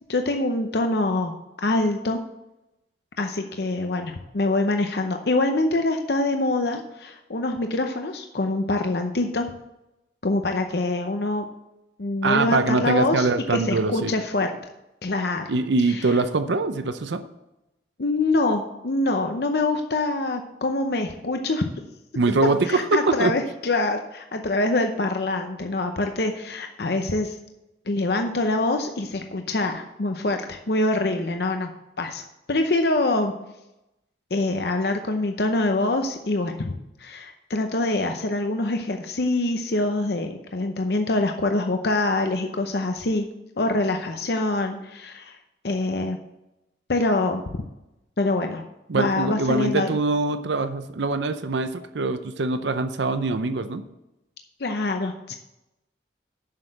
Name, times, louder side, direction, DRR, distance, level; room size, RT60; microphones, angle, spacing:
voice 1, 0.1-1.3 1.6-2.2 3.2-9.5 10.2-11.5 12.0-14.5 15.0-15.5 15.8-16.1 18.0-21.7 22.6-27.4 27.9-31.7 32.0-32.2 32.5-33.3 34.3-36.7 37.0-43.2 43.6-45.4 45.6-46.2 46.9-47.4 48.2-48.6 48.9-49.9 54.6-55.3, left 2 dB, 60° left, 5 dB, 0.7 m, -25 dB
voice 2, 12.2-14.1 15.5-17.3 22.1-23.3 48.9-53.8, right 3 dB, 75° right, 10 dB, 0.6 m, -23 dB
7.5 x 6.5 x 7.7 m, 0.92 s
head